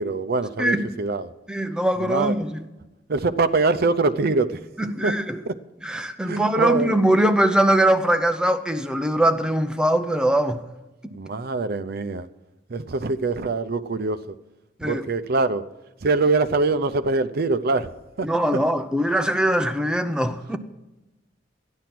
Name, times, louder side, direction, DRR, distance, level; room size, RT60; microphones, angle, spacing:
voice 1, 0.0-1.3 2.0-2.3 3.1-4.6 5.0-5.1 6.3-6.9 11.1-12.3 12.7-14.2 14.8-15.7 16.0-17.9 18.2-18.3, right 3 dB, 55° right, 0.6 m, -23 dB
voice 2, 0.6-1.0 1.5-2.6 4.8-5.4 5.8-10.6 14.8-15.0 18.2-20.6, right 1 dB, 5° right, 0.7 m, -22 dB
12.5 x 10.5 x 6.0 m
head